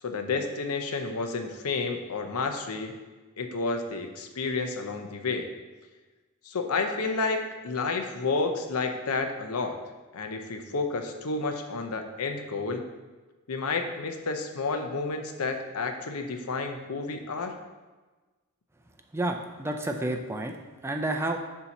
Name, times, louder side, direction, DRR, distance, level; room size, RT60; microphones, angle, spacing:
voice 1, 0.0-2.9 3.4-5.5 6.5-9.8 10.1-12.8 13.5-17.5, left 3 dB, 85° left, 5 dB, 0.7 m, -30 dB
voice 2, 19.1-20.5 20.8-21.4, right 1 dB, 10° right, 4 dB, 0.4 m, -30 dB
6.9 x 2.8 x 5.8 m, 1.2 s
head